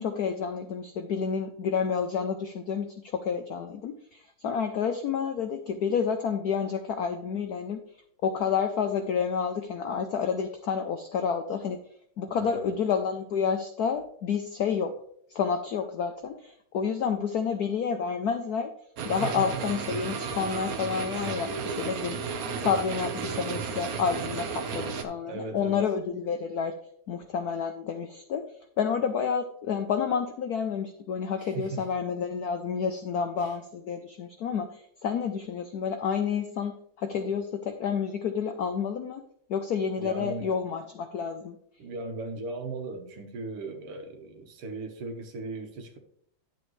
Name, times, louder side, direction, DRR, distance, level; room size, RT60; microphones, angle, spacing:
voice 1, 0.0-7.8 8.2-11.8 12.2-15.0 15.3-18.7 19.0-26.8 27.1-39.2 39.5-41.6, left 6 dB, 85° left, 0.8 m, -29 dB
voice 2, 12.3-12.6 19.2-19.6 25.2-25.9 31.4-31.8 33.4-33.5 40.0-40.5 41.8-46.0, right 3 dB, 85° right, 2.2 m, -37 dB
sound 1, 19.0-25.0, right 5 dB, 55° right, 1.1 m, -33 dB
10.5 x 7.3 x 3.1 m
omnidirectional pair, 2.4 m